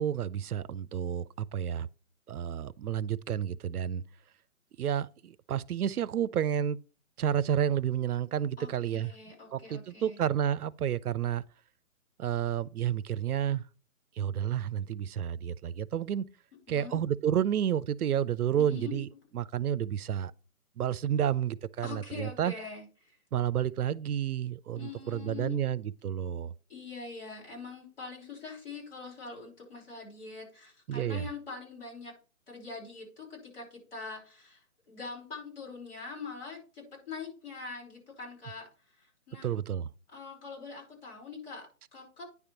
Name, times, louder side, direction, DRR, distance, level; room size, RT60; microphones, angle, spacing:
voice 1, 0.0-1.9 2.3-4.0 4.8-6.8 7.2-9.1 9.5-11.4 12.2-13.6 14.2-16.2 16.7-19.1 19.3-20.3 20.8-22.5 23.3-26.5 30.9-31.2 39.4-39.9, right 9 dB, 85° right, 0.6 m, -30 dB
voice 2, 8.6-10.2 16.7-17.0 18.6-19.0 21.8-23.2 24.7-25.6 26.7-32.1 32.5-34.6 34.9-38.7 39.0-39.5 40.1-42.2, left 4 dB, 40° left, 5.1 m, -43 dB
9.7 x 3.5 x 5.7 m
hypercardioid pair, 175°, 44 cm